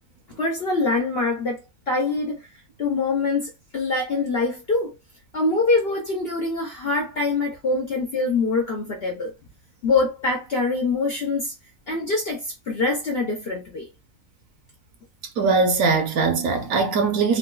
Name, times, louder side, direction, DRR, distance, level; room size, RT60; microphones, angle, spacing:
voice 1, 0.4-2.4 2.8-5.0 5.3-9.3 9.8-11.5 11.9-13.9, left 3 dB, 60° left, 0.6 m, -24 dB
voice 2, 15.4-17.4, right 4 dB, 65° right, 1.0 m, -21 dB
3.8 x 2.2 x 2.2 m
omnidirectional pair, 1.6 m